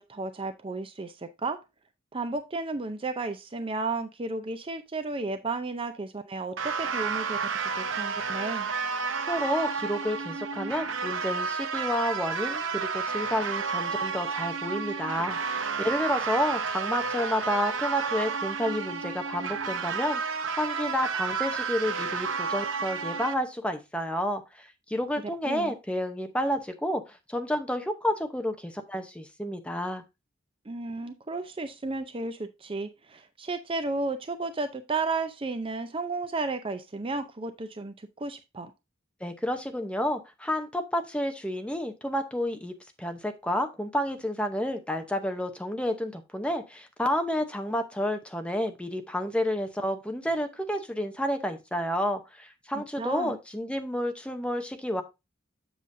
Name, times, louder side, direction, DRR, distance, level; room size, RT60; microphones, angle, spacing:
voice 1, 0.0-1.6 2.1-8.7 25.4-25.7 30.7-38.7 52.7-53.4, right 3 dB, 30° right, 9 dB, 0.5 m, -33 dB
sound 1, 6.6-23.3, right 5 dB, 80° right, 0.7 m, -31 dB
voice 2, 9.2-30.0 39.2-55.0, equal, 5° left, 6 dB, 0.8 m, -30 dB
7.5 x 6.9 x 2.6 m, 0.24 s
head